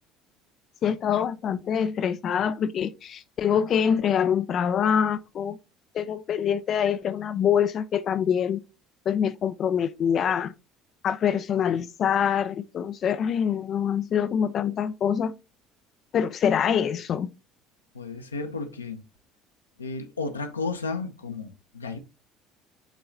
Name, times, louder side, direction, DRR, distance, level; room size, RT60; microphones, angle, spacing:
voice 1, 0.8-5.6 5.9-8.6 9.1-10.5 11.0-15.3 16.1-17.3, left 8 dB, 40° left, 0.3 m, -25 dB
voice 2, 17.9-19.0 19.8-22.0, left 4 dB, 80° left, 0.7 m, -33 dB
8.9 x 3.8 x 2.7 m
figure-of-eight pair, 60°, 0 cm